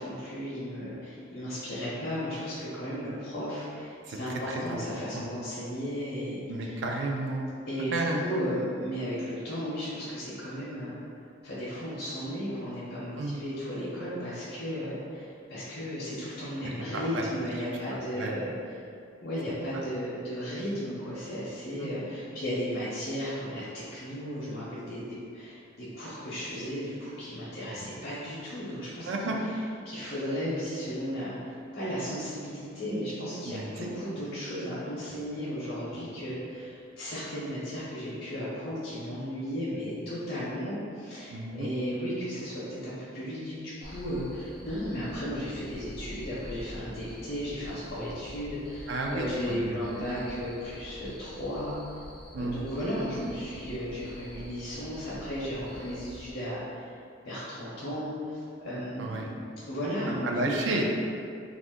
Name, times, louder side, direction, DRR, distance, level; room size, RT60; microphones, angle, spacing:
voice 1, 0.0-6.8 7.7-11.0 11.4-18.8 19.2-29.3 29.8-51.8 52.4-57.0 57.2-59.3 59.7-60.8, equal, 50° left, -10 dB, 0.6 m, -35 dB
voice 2, 4.1-4.8 5.1-5.2 6.5-7.5 7.9-8.2 13.2-13.4 16.6-17.3 17.5-17.6 18.2-18.4 21.8-21.9 29.0-29.4 33.4-33.9 41.3-41.7 48.9-50.0 52.3-52.6 59.0-59.3 60.2-60.8, right 2 dB, 70° right, 1 dB, 0.4 m, -32 dB
Cricket, 43.8-56.3, equal, ahead, 0.3 m, -46 dB
2.5 x 2.4 x 3.6 m, 2.4 s
head